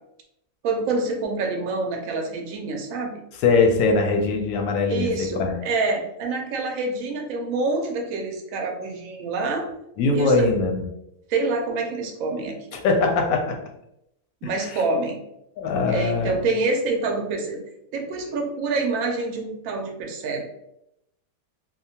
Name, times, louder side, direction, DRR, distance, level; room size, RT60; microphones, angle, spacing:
voice 1, 0.6-3.1 4.9-9.7 10.1-10.6 11.3-12.6 14.4-15.2 15.9-17.6 17.9-20.4, right 3 dB, 70° right, 2 dB, 0.9 m, -26 dB
voice 2, 3.4-5.6 10.0-10.8 12.7-13.6 14.4-14.8 15.6-16.4, left 4 dB, 70° left, 2 dB, 0.9 m, -22 dB
2.7 x 2.2 x 2.7 m, 0.81 s
omnidirectional pair, 1.7 m